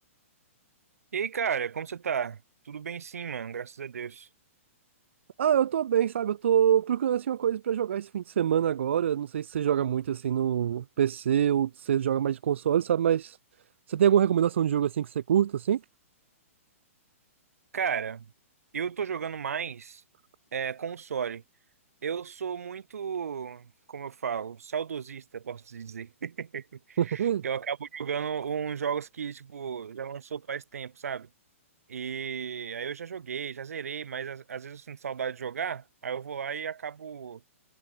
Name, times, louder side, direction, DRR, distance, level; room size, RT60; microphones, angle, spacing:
voice 1, 1.1-2.4 2.6-4.3 17.7-18.3 18.7-20.0 20.5-21.4 22.0-31.3 31.9-37.4, right 7 dB, 85° right, 6.1 m, -34 dB
voice 2, 5.4-13.4 13.9-15.8 27.0-27.4, right 9 dB, 55° right, 1.9 m, -25 dB
hypercardioid pair, 175°, 8 cm